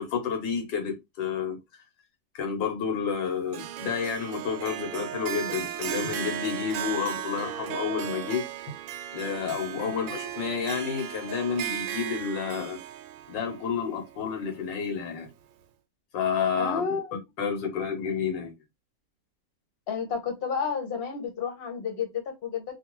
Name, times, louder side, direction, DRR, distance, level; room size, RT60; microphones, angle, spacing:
voice 1, 0.0-1.6 2.3-8.4 9.1-12.8 13.3-15.3 16.1-16.8 17.4-18.5, left 6 dB, 85° left, 1.7 m, -30 dB
Harp, 3.5-14.8, right 10 dB, 90° right, 1.3 m, -36 dB
voice 2, 16.6-17.2 19.9-22.6, left 6 dB, 40° left, 1.0 m, -31 dB
3.5 x 2.4 x 2.9 m
omnidirectional pair, 1.9 m